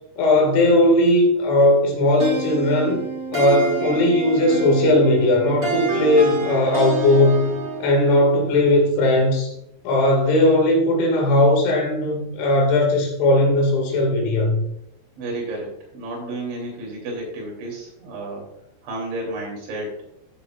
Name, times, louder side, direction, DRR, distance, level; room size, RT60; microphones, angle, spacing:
voice 1, 0.2-3.0 3.3-7.5 7.8-9.5 9.8-14.6, left 1 dB, 85° left, 1 dB, 4.5 m, -18 dB
sound 1, 2.2-8.0, right 5 dB, 30° right, 2.4 m, -27 dB
voice 2, 15.2-18.5 18.8-20.0, right 2 dB, 80° right, -1 dB, 5.4 m, -31 dB
13.5 x 7.4 x 2.4 m, 0.78 s
omnidirectional pair, 5.2 m